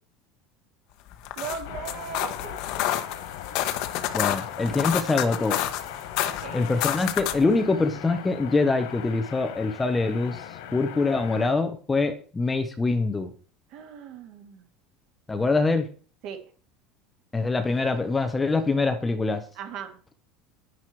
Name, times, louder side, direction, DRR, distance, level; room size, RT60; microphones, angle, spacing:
sound 1, 1.1-7.5, left 13 dB, 50° left, 1.2 m, -29 dB
voice 1, 1.4-2.8 4.7-4.9 6.2-6.6 13.7-14.6 16.2-16.4 18.5-18.9 19.6-20.0, right 7 dB, 45° right, 5 dB, 2.8 m, -38 dB
sound 2, 1.6-11.5, left 10 dB, 90° left, 2.8 m, -39 dB
voice 2, 4.1-5.6 6.5-13.3 15.3-15.9 17.3-19.4, left 3 dB, 10° left, 7 dB, 0.8 m, -24 dB
10.5 x 10.5 x 4.7 m, 0.40 s
cardioid pair, 175°, 0 cm